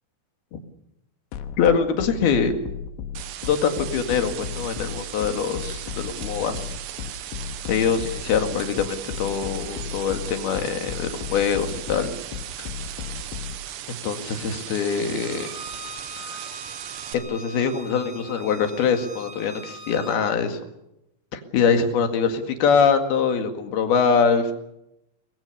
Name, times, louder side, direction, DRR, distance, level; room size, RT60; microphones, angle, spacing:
sound 1, 1.3-13.6, left 8 dB, 90° left, 3.7 m, -34 dB
voice 1, 1.6-2.5 3.5-6.7 7.7-12.1 12.6-12.7 14.0-15.5 16.2-16.4 17.1-20.6 21.3-24.5, left 6 dB, 60° left, 6 dB, 3.5 m, -23 dB
sound 2, 3.2-17.2, right 12 dB, 75° right, 3.6 m, -37 dB
Bowed string instrument, 15.2-20.2, right 1 dB, 40° right, 3.0 m, -41 dB
23.5 x 22.0 x 6.8 m, 0.85 s
omnidirectional pair, 5.7 m